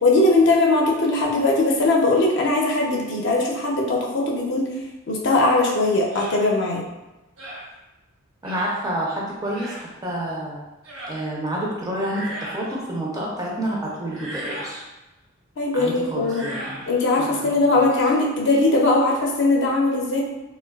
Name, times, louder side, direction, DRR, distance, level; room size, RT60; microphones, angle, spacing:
voice 1, 0.0-4.7 5.1-6.8 15.6-16.5 16.9-20.2, left 2 dB, 55° left, -1 dB, 0.5 m, -20 dB
sound 1, 6.1-6.4 7.4-7.7 8.4-8.7 9.5-9.8 10.8-11.2 12.0-12.7 14.1-14.8 16.2-16.9, right 1 dB, 70° right, 0.7 m, -35 dB
voice 2, 8.4-10.6 11.1-14.8 15.7-16.8 17.2-17.9, right 1 dB, 15° right, -3 dB, 0.4 m, -29 dB
3.1 x 2.1 x 2.2 m, 1.0 s
head